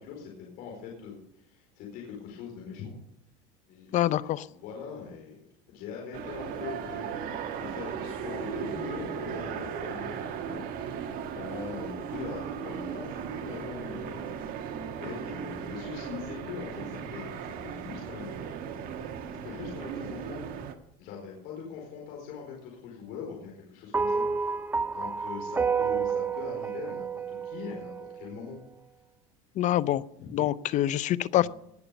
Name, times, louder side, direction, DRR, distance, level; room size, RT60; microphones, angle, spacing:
voice 1, 0.0-2.9 3.7-10.9 11.3-14.6 15.0-18.5 19.4-20.4 21.0-24.5 24.9-28.6 30.2-30.3 31.4-31.5, left 6 dB, 65° left, -1 dB, 4.4 m, -42 dB
voice 2, 3.9-4.5 29.6-30.0 30.3-31.5, left 13 dB, 45° left, 19 dB, 0.6 m, -25 dB
sound 1, 6.1-20.7, right 7 dB, 55° right, 1.6 m, -37 dB
sound 2, 23.9-28.4, right 5 dB, 10° right, 0.4 m, -30 dB
19.0 x 6.9 x 7.0 m, 0.77 s
supercardioid pair, 115°, 18 cm